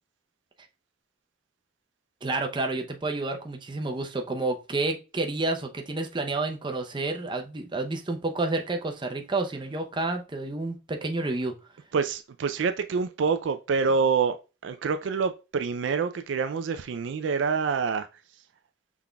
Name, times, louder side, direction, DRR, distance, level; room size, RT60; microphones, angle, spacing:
voice 1, 2.2-11.5, right 2 dB, 25° right, 0.6 m, -30 dB
voice 2, 11.9-14.4 14.6-18.1, right 5 dB, 70° right, 0.4 m, -26 dB
5.7 x 3.6 x 2.2 m
head